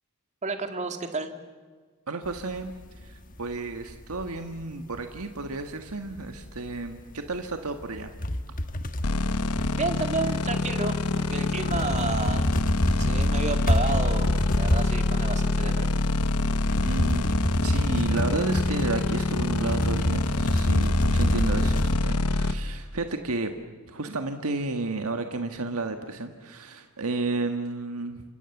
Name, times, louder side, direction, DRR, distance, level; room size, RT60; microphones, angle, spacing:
voice 1, 0.4-1.3 9.7-12.5 13.0-15.9, right 3 dB, 30° right, 7 dB, 2.2 m, -31 dB
voice 2, 2.1-2.7 3.0-8.1 16.8-17.3 17.6-23.5 23.9-28.2, right 3 dB, 75° right, 6 dB, 1.6 m, -32 dB
sound 1, 2.2-4.7 4.9-5.5 5.9-10.7 11.0-22.0, left 1 dB, 35° left, 1.4 m, -28 dB
sound 2, 9.0-22.5, left 2 dB, 85° left, 1.1 m, -26 dB
29.0 x 25.5 x 7.2 m, 1.5 s
head